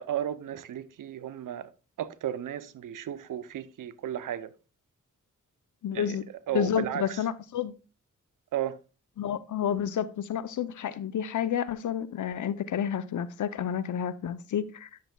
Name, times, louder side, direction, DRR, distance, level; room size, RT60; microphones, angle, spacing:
voice 1, 0.0-1.7 2.0-4.5 5.9-7.2 8.5-8.8, right 10 dB, 75° right, 0.6 m, -34 dB
voice 2, 5.8-6.2 6.5-7.7 9.2-14.9, left 9 dB, 65° left, 0.6 m, -30 dB
10.0 x 6.7 x 2.3 m
cardioid pair, 55°, 32 cm